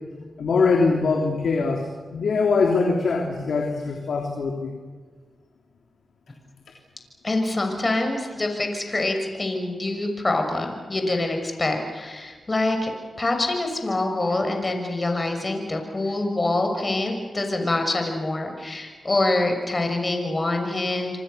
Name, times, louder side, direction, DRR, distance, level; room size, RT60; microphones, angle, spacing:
voice 1, 0.4-4.7, left 4 dB, 80° left, 2 dB, 3.2 m, -22 dB
voice 2, 7.2-12.9 13.2-21.2, left 2 dB, 35° left, 4 dB, 6.4 m, -25 dB
28.5 x 25.5 x 6.9 m, 1.4 s
cardioid pair, 45°, 0 cm